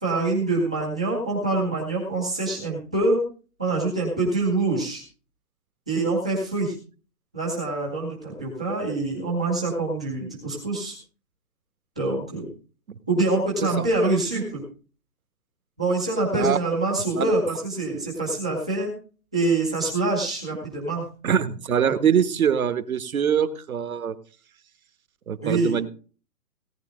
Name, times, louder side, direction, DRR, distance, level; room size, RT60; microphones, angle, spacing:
voice 1, 0.0-3.2 3.6-5.0 5.9-6.7 7.3-10.9 12.0-12.5 13.1-14.6 15.8-18.9 19.3-21.0 21.8-21.9 25.4-25.8, right 2 dB, 5° right, -4 dB, 0.6 m, -25 dB
voice 2, 21.2-24.2 25.3-25.9, right 8 dB, 65° right, 11 dB, 1.5 m, -23 dB
17.0 x 9.7 x 3.7 m, 0.38 s
hypercardioid pair, 165°, 45 cm